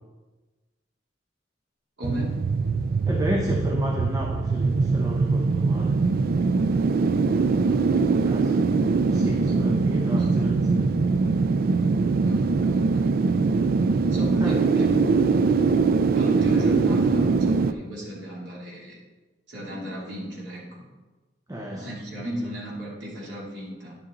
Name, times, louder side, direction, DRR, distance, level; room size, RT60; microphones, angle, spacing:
sound 1, 2.0-17.7, right 4 dB, 55° right, 0.4 m, -22 dB
voice 1, 2.0-2.5 7.3-8.5 9.1-9.5 10.0-10.5 12.3-13.2 14.0-15.1 16.1-19.0 19.5-20.8 21.5-24.0, equal, 85° right, -5 dB, 2.8 m, -36 dB
voice 2, 3.1-6.0 8.2-8.6 9.1-11.0 14.4-14.5 21.5-22.0, equal, 20° right, 0 dB, 0.8 m, -31 dB
10.5 x 6.7 x 3.8 m, 1.3 s
head